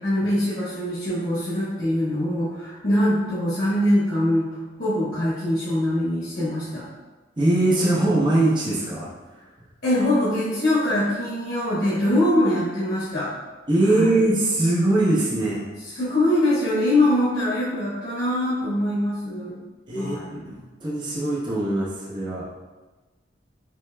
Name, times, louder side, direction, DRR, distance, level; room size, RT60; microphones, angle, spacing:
voice 1, 0.0-4.5 4.8-6.8 9.8-13.3 13.9-14.1 15.8-19.6 19.9-20.5, left 1 dB, 55° left, -11 dB, 1.2 m, -23 dB
voice 2, 7.4-9.1 13.7-15.6 19.9-20.5 20.8-22.4, right 2 dB, 25° right, -5 dB, 0.7 m, -21 dB
6.2 x 2.9 x 2.2 m, 1.2 s
head